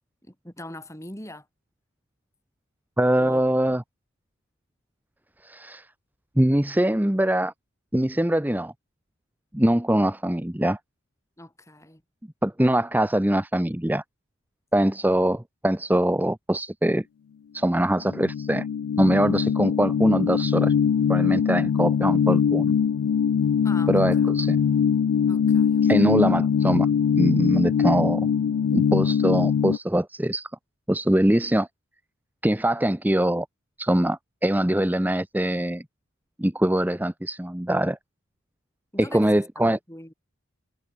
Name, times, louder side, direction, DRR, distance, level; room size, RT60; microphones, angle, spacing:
voice 1, 0.2-1.5 3.2-3.6 11.4-12.0 23.6-24.3 25.3-26.2 38.9-40.1, left 1 dB, 15° left, 5.9 m, -42 dB
voice 2, 3.0-3.8 5.4-5.9 6.4-7.5 7.9-8.7 9.5-10.8 12.4-14.0 14.7-17.0 17.5-18.7 19.0-20.7 21.1-22.7 23.9-24.6 25.8-26.9 27.2-28.3 28.7-30.5 30.9-31.7 32.4-33.5 33.8-35.8 36.4-38.0 39.0-39.8, right 1 dB, 10° right, 0.7 m, -23 dB
sound 1, 18.1-29.8, left 7 dB, 80° left, 0.3 m, -22 dB
head